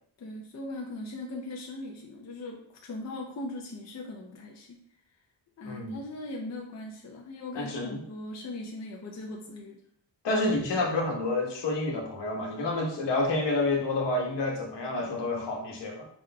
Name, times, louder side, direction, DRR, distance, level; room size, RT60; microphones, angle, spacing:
voice 1, 0.2-4.8 5.6-9.8, left 2 dB, 40° left, 0 dB, 0.6 m, -39 dB
voice 2, 5.6-6.0 7.5-8.0 10.2-16.1, left 2 dB, 75° left, 0 dB, 1.2 m, -29 dB
4.9 x 3.7 x 2.2 m, 0.67 s
cardioid pair, 105°, 42 cm